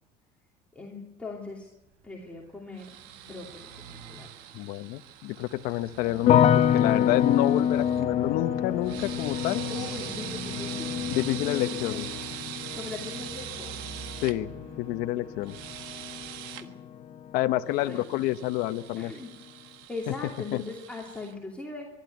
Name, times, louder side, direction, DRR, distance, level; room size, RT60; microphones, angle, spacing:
voice 1, 0.7-1.7 2.0-2.9 3.2-4.3 6.0-6.5 9.7-10.9 11.3-11.6 11.9-12.0 12.7-13.8 16.5-16.7 17.9-18.0 19.0-19.3 19.9-21.9, left 3 dB, 10° left, -3 dB, 2.8 m, -40 dB
Car passing by / Truck, 2.0-16.4, right 5 dB, 60° right, 4.0 m, -47 dB
sound 1, 2.8-8.0 8.8-14.3 15.4-16.6 17.7-21.3, right 12 dB, 85° right, 1.4 m, -42 dB
voice 2, 4.5-9.6 11.1-12.0 14.2-14.5 14.8-15.5 17.3-19.1 20.1-20.2 20.5-20.6, left 15 dB, 75° left, 10 dB, 0.8 m, -28 dB
sound 2, 6.3-17.3 17.6-18.3, left 9 dB, 45° left, 1.0 m, -28 dB
24.0 x 12.0 x 9.4 m, 0.96 s
cardioid pair, 135°, 15 cm